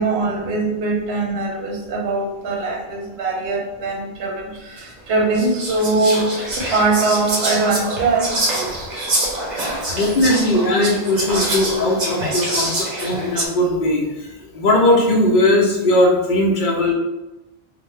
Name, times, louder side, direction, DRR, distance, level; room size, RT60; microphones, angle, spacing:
voice 1, 0.0-8.9 9.7-9.9, right 3 dB, 85° right, -1 dB, 0.9 m, -22 dB
Whispering, 4.8-4.9 5.3-13.5, right 1 dB, 50° right, 0.7 m, -25 dB
voice 2, 9.9-14.3 14.5-16.9, left 1 dB, 60° left, -1 dB, 0.6 m, -18 dB
2.6 x 2.1 x 3.0 m, 1.0 s
omnidirectional pair, 1.0 m